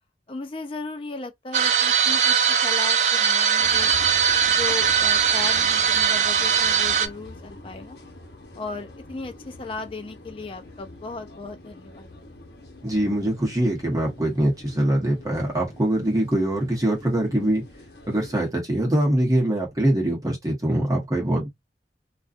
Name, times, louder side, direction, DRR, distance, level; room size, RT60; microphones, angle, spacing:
voice 1, 0.3-3.9 4.4-8.0 8.5-12.1, left 3 dB, 30° left, 0.4 m, -36 dB
sound 1, 1.5-7.1, right 7 dB, 40° right, 0.3 m, -20 dB
sound 2, 3.6-18.5, left 1 dB, 65° left, 0.9 m, -45 dB
voice 2, 12.8-17.6 18.1-21.5, right 1 dB, 20° right, 0.9 m, -23 dB
2.4 x 2.3 x 2.4 m
head